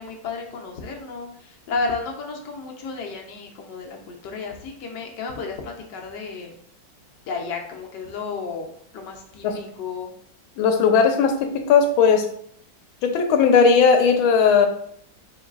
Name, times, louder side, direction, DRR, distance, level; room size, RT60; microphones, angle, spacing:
voice 1, 0.0-6.5 7.3-10.1, left 4 dB, 70° left, 2 dB, 1.2 m, -32 dB
voice 2, 10.6-12.3 13.0-14.7, left 5 dB, 90° left, 5 dB, 1.4 m, -17 dB
4.5 x 3.9 x 2.4 m, 0.66 s
omnidirectional pair, 2.1 m